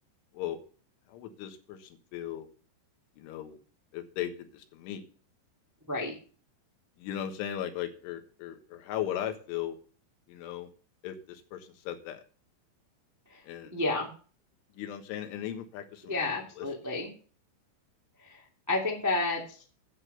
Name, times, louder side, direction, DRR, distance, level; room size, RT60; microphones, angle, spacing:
voice 1, 1.1-2.5 3.2-3.6 3.9-5.0 7.0-9.8 10.3-10.7 11.0-12.2 13.5-13.8 14.8-16.3 16.6-16.7, left 11 dB, 85° left, 6 dB, 3.8 m, -37 dB
voice 2, 13.7-14.1 16.1-17.1 18.7-19.4, left 3 dB, 20° right, -1 dB, 0.4 m, -30 dB
9.9 x 8.1 x 6.7 m, 0.40 s
omnidirectional pair, 5.4 m